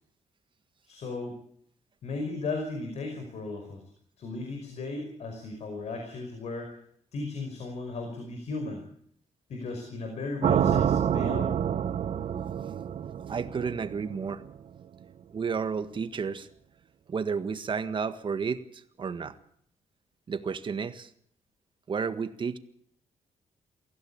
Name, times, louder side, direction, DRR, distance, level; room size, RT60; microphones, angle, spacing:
voice 1, 0.8-1.4 2.0-3.8 4.2-6.8 7.1-8.8 9.5-11.5, left 3 dB, 65° left, 4 dB, 5.3 m, -36 dB
sound 1, 10.4-14.5, right 9 dB, 65° right, 1.1 m, -27 dB
voice 2, 13.3-14.4 15.3-16.5 17.1-19.4 20.3-21.1 21.9-22.6, right 5 dB, 45° right, 11 dB, 1.7 m, -32 dB
23.5 x 16.0 x 8.8 m, 0.65 s
cardioid pair, 100°, 12 cm